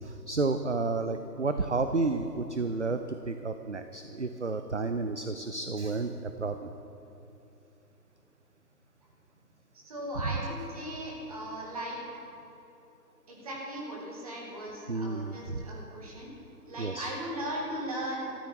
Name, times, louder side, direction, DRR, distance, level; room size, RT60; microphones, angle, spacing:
voice 1, 0.0-6.7 10.2-10.3 14.9-15.7 16.8-17.1, right 3 dB, 45° right, 8 dB, 0.5 m, -31 dB
voice 2, 9.8-12.0 13.3-16.3 16.7-18.3, right 1 dB, 20° right, -3 dB, 2.3 m, -37 dB
16.5 x 13.5 x 4.6 m, 2.9 s
figure-of-eight pair, 160°, 49 cm